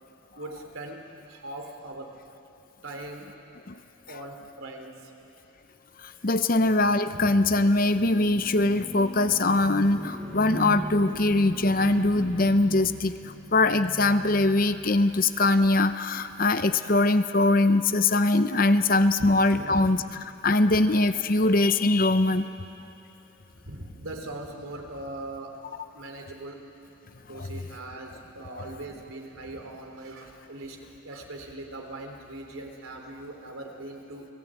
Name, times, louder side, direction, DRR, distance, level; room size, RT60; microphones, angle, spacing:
voice 1, 0.4-1.0 1.3-2.1 2.8-3.3 4.1-5.1 19.2-19.9 20.7-20.8 23.6-25.6 25.9-26.6 27.3-34.3, right 2 dB, 85° right, 2 dB, 3.6 m, -40 dB
voice 2, 6.2-13.1 13.5-20.0 20.4-22.5, left 2 dB, 40° left, 10 dB, 0.8 m, -22 dB
sound 1, 6.9-15.6, right 1 dB, 10° left, 6.0 m, -39 dB
30.0 x 19.0 x 9.1 m, 2.8 s
head